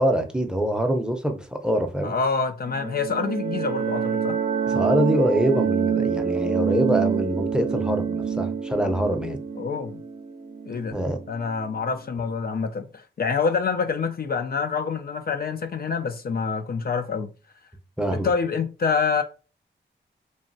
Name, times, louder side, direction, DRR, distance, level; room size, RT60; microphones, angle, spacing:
voice 1, 0.0-2.1 4.7-9.4 10.9-11.2 18.0-18.3, right 1 dB, 5° right, 0.6 m, -24 dB
voice 2, 2.0-4.4 9.6-10.0 10.7-11.0 11.3-17.3 18.1-19.2, left 5 dB, 50° left, 0.4 m, -26 dB
sound 1, 2.7-11.2, right 7 dB, 55° right, 0.5 m, -26 dB
3.1 x 2.2 x 2.6 m
cardioid pair, 50°, 19 cm